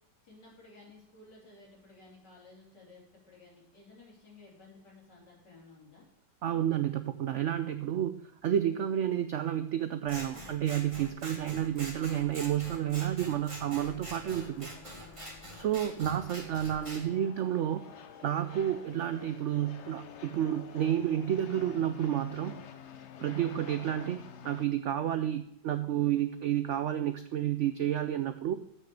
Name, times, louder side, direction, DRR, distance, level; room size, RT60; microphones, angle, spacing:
voice 1, 0.2-6.1, left 3 dB, 80° left, -4 dB, 3.9 m, -55 dB
voice 2, 6.4-8.2 8.4-14.7 15.6-17.9 18.2-22.6 23.2-28.6, right 10 dB, 85° right, 10 dB, 0.6 m, -30 dB
Scissors, 10.1-17.0, right 1 dB, 20° right, 1.8 m, -45 dB
sound 1, 13.6-24.7, left 8 dB, 55° left, 0.8 m, -49 dB
7.5 x 6.4 x 6.9 m, 0.74 s
omnidirectional pair, 1.8 m